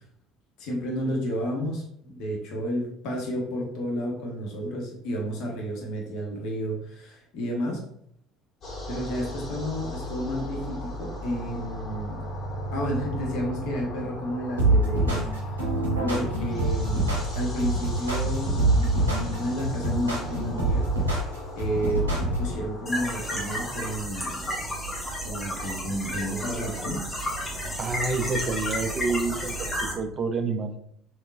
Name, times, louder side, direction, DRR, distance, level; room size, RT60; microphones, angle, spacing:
voice 1, 0.6-7.8 8.9-12.3 12.7-15.7 16.0-20.9 21.5-24.5 25.2-27.0 27.4-27.5, equal, 55° left, -1 dB, 0.9 m, -31 dB
sound 1, 8.6-23.7, equal, 40° left, 1.2 m, -36 dB
sound 2, 14.6-22.6, right 2 dB, 80° right, 0.6 m, -25 dB
sound 3, 22.9-29.9, equal, 15° left, 1.0 m, -32 dB
voice 2, 27.8-30.8, right 4 dB, 35° right, 8 dB, 0.3 m, -28 dB
3.6 x 2.3 x 2.3 m, 0.70 s
figure-of-eight pair, 60°, 0 cm